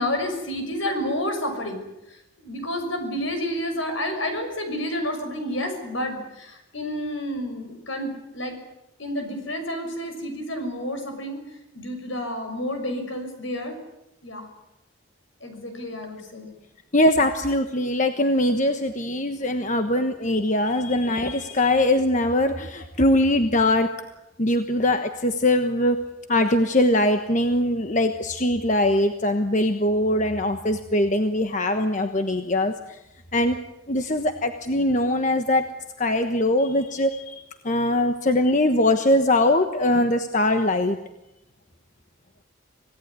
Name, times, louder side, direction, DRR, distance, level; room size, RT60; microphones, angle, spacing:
voice 1, 0.0-8.6 9.0-11.4 11.7-13.8 14.2-14.5 15.4-16.5, left 1 dB, 70° left, 6 dB, 6.4 m, -30 dB
voice 2, 16.9-23.9 24.4-26.0 26.3-33.0 33.3-33.6 33.9-35.6 36.0-41.0, left 1 dB, 35° left, 7 dB, 1.3 m, -22 dB
26.0 x 17.5 x 9.6 m, 0.89 s
head